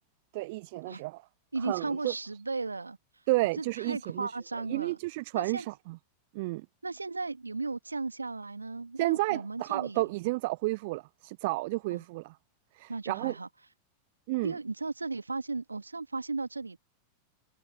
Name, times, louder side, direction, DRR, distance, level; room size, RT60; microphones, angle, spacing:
voice 1, 0.3-1.2 1.6-2.1 3.3-4.3 4.7-6.0 6.3-6.7 9.0-12.3 12.7-13.3 14.3-14.5, right 22 dB, 50° right, 0.5 m, -31 dB
voice 2, 1.5-3.0 3.6-5.0 5.3-5.7 6.8-10.1 11.9-12.0 12.9-13.5 14.4-16.8, right 3 dB, 80° right, 1.7 m, -35 dB
figure-of-eight pair, 90°, 0 cm